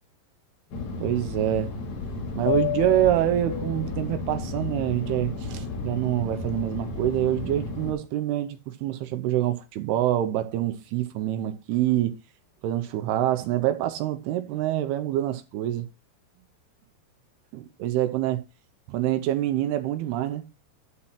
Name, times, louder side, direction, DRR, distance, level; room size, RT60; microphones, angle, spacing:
Fixed-wing aircraft airplane, 0.7-7.9, left 5 dB, 60° left, 3.7 m, -32 dB
voice 1, 1.0-1.7 2.4-12.2 12.6-15.9 17.5-18.4 18.9-20.4, right 13 dB, 80° right, 2.5 m, -26 dB
11.5 x 4.2 x 5.7 m
omnidirectional pair, 5.0 m